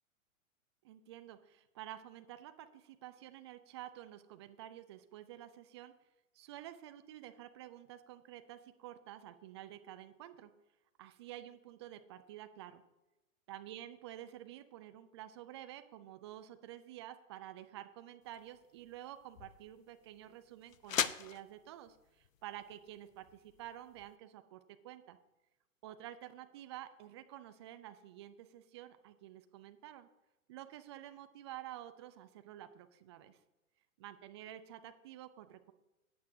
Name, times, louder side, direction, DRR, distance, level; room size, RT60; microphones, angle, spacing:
voice 1, 0.8-5.9 6.3-10.5 11.0-12.8 13.5-25.2 25.8-30.1 30.5-33.4 34.0-35.7, right 12 dB, 20° right, 9 dB, 0.4 m, -50 dB
sound 1, 18.2-24.1, left 8 dB, 75° left, 0.6 m, -42 dB
14.5 x 9.3 x 2.7 m, 0.98 s
figure-of-eight pair, 105°, 41 cm